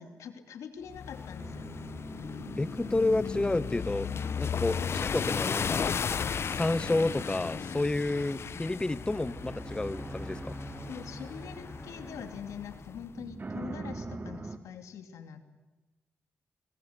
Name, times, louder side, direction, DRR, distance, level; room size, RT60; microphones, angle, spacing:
voice 1, 0.0-1.9 2.1-2.2 4.8-5.0 8.1-8.5 10.9-15.4, left 7 dB, 80° left, 8 dB, 2.7 m, -44 dB
sound 1, 0.9-13.0, left 6 dB, 55° left, 0.8 m, -35 dB
sound 2, 1.4-14.6, right 3 dB, 35° right, 2.3 m, -45 dB
voice 2, 2.6-4.1 4.4-5.9 6.5-10.6, left 2 dB, 15° left, 17 dB, 0.8 m, -30 dB
sound 3, 7.0-12.4, right 1 dB, 10° right, 1.4 m, -46 dB
26.0 x 23.5 x 8.2 m, 1.1 s
cardioid pair, 65°, 5 cm